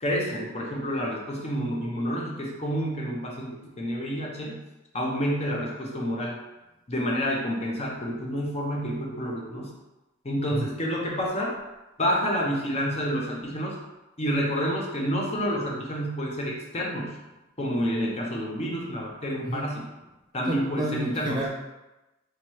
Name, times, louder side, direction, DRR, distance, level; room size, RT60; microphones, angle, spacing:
voice 1, 0.0-4.6 4.9-6.4 6.9-9.7 10.2-11.5 12.0-13.8 14.2-17.2 17.6-19.9 20.3-21.4, equal, 30° left, -2 dB, 0.6 m, -29 dB
voice 2, 20.5-21.5, right 1 dB, 20° right, -2 dB, 0.4 m, -30 dB
3.5 x 2.9 x 3.0 m, 1.0 s
head